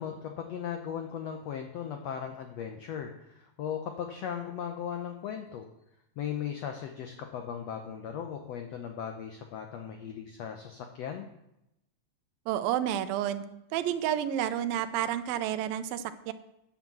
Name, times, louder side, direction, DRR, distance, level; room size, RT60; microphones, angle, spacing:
voice 1, 0.0-5.7 6.2-11.3, left 8 dB, 80° left, 4 dB, 1.5 m, -37 dB
voice 2, 12.5-13.4 13.7-16.3, right 11 dB, 85° right, 10 dB, 2.5 m, -30 dB
9.4 x 7.3 x 7.4 m, 0.85 s
omnidirectional pair, 4.1 m